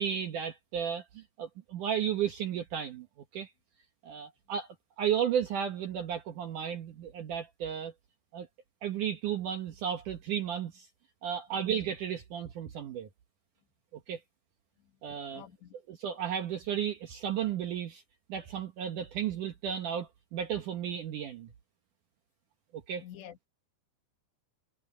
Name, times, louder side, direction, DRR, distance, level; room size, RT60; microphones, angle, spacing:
voice 1, 0.0-3.1 3.3-3.5 4.0-4.7 5.0-7.9 8.3-8.5 8.8-10.9 11.2-13.1 13.9-14.2 15.0-15.4 15.9-18.0 18.3-21.5 22.7-23.0, right 8 dB, 65° right, 2.1 m, -33 dB
voice 2, 15.3-15.8 23.0-23.5, left 10 dB, 80° left, 3.9 m, -48 dB
omnidirectional pair, 5.0 m